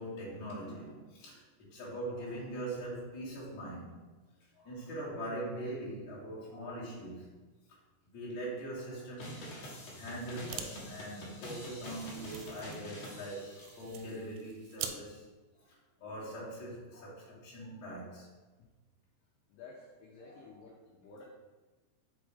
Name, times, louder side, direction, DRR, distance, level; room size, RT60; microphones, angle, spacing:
voice 1, 0.0-4.0 4.6-7.3 8.1-15.2 15.7-18.3, right 1 dB, 35° left, -8 dB, 1.9 m, -42 dB
sound 1, 9.2-14.1, left 1 dB, 55° left, 2.0 m, -47 dB
sound 2, 10.2-10.7 11.0-11.1 11.4-15.0, right 9 dB, 85° right, 2.3 m, -45 dB
voice 2, 19.5-21.3, left 3 dB, 75° left, -2 dB, 2.1 m, -53 dB
6.3 x 4.3 x 4.9 m, 1.3 s
omnidirectional pair, 4.8 m